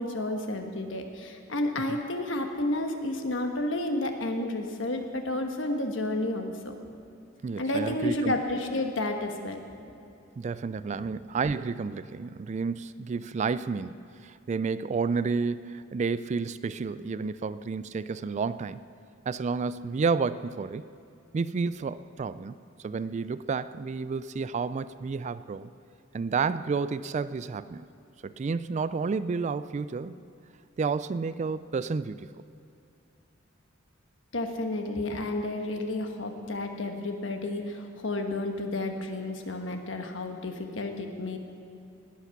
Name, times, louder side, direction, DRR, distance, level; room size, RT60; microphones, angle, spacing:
voice 1, 0.0-6.7 7.6-9.6 11.0-11.1 34.3-41.4, left 1 dB, 70° left, 4 dB, 1.4 m, -31 dB
voice 2, 7.4-8.4 10.4-13.9 14.2-18.8 19.3-20.8 21.3-22.6 22.8-25.7 26.1-27.9 28.2-30.2 30.8-32.4, right 4 dB, 35° right, 15 dB, 0.3 m, -30 dB
19.5 x 8.2 x 5.9 m, 2.6 s
head